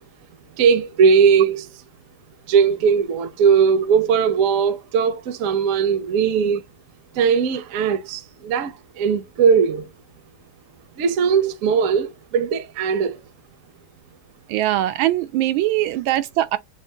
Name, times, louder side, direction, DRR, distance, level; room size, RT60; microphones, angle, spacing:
voice 1, 0.6-1.7 2.5-6.6 7.1-9.9 11.0-13.2, right 6 dB, 60° right, 0.8 m, -19 dB
voice 2, 14.5-16.6, right 14 dB, 90° right, 1.4 m, -21 dB
6.1 x 2.5 x 2.7 m
omnidirectional pair, 2.1 m